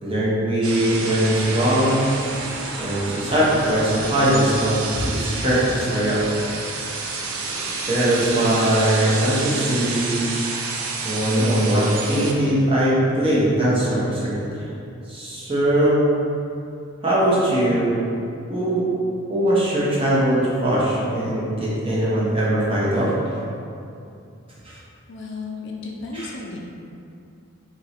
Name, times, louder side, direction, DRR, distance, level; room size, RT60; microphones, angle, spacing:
voice 1, 0.0-2.1 2.8-6.2 7.9-10.3 11.0-14.7 15.1-16.1 17.0-18.0 18.5-18.9 19.3-23.1 24.6-24.7 26.1-26.3, right 1 dB, 25° right, -8 dB, 0.7 m, -21 dB
sound 1, 0.6-12.3, right 3 dB, 80° right, 0.4 m, -29 dB
voice 2, 25.1-26.6, left 3 dB, 55° left, -1 dB, 0.4 m, -33 dB
3.0 x 2.6 x 4.1 m, 2.6 s
head